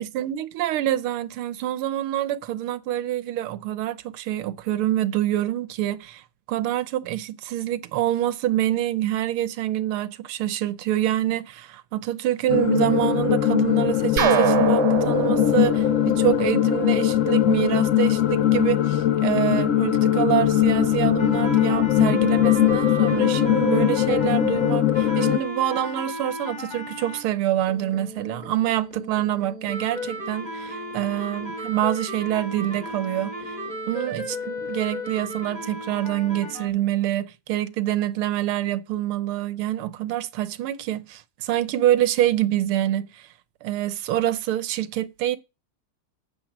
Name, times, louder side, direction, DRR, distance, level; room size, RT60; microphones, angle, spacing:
voice 1, 0.0-6.2 6.5-33.6 33.9-43.3 43.6-45.4, right 13 dB, 85° right, 1.7 m, -26 dB
sound 1, 12.5-25.4, left 11 dB, 65° left, 0.7 m, -21 dB
sound 2, 14.2-17.0, right 10 dB, 60° right, 1.5 m, -24 dB
sound 3, 21.2-27.2 27.7-36.7, equal, 20° left, 3.3 m, -34 dB
9.2 x 6.5 x 7.3 m
omnidirectional pair, 2.3 m